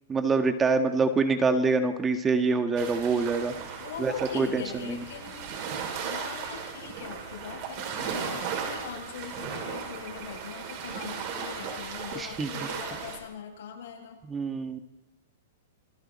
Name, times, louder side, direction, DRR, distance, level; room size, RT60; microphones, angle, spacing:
voice 1, 0.1-3.5 4.0-5.0 12.2-12.5 14.3-14.8, right 4 dB, 15° right, 7 dB, 1.5 m, -25 dB
sound 1, 2.8-13.2, right 6 dB, 45° right, 6.1 m, -36 dB
voice 2, 3.8-5.7 6.0-14.2, left 7 dB, 70° left, 0 dB, 8.0 m, -42 dB
28.5 x 22.5 x 4.3 m, 0.98 s
hypercardioid pair, 140°, 0 cm